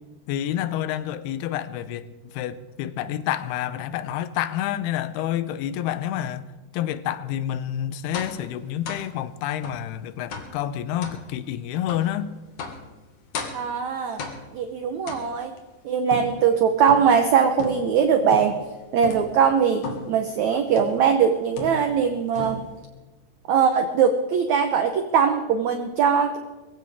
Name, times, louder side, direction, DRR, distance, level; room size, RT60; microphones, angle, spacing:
voice 1, 0.3-2.1 2.3-6.5 6.7-12.4, left 11 dB, 85° left, 2.7 m, -28 dB
sound 1, 8.1-8.4 8.8-9.1 9.6-9.9 10.3-10.6 11.0-11.2 11.9-12.1 12.6-12.9 13.3-13.7 14.2-14.6 15.1-15.6 16.1-17.2 17.6-18.0 18.3-18.7 19.0-19.3 19.8-20.2 20.8-21.1 21.6-22.1 22.3-22.8, left 4 dB, 55° left, 3.1 m, -35 dB
voice 2, 13.5-14.2 14.5-15.5 15.8-18.6 18.9-22.6 23.5-26.4, right 7 dB, 75° right, 1.7 m, -21 dB
23.0 x 16.0 x 3.6 m
omnidirectional pair, 4.6 m